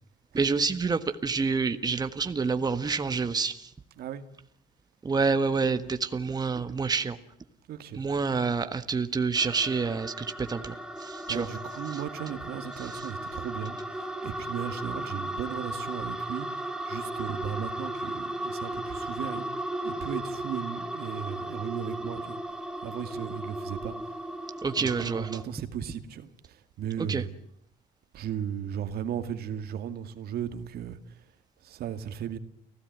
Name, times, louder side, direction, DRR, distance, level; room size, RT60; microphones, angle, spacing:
voice 1, 0.3-3.7 5.0-7.2 7.9-10.7 11.0-11.4 24.6-25.3 27.1-27.2, right 4 dB, 25° right, 1.5 m, -27 dB
voice 2, 7.7-8.0 11.3-19.5 19.8-22.4 22.8-24.2 24.4-27.3 28.1-31.2 31.6-32.4, right 9 dB, 65° right, 2.2 m, -36 dB
sound 1, 9.3-25.4, right 1 dB, 5° right, 3.0 m, -36 dB
30.0 x 16.5 x 9.4 m
cardioid pair, 110°, 17 cm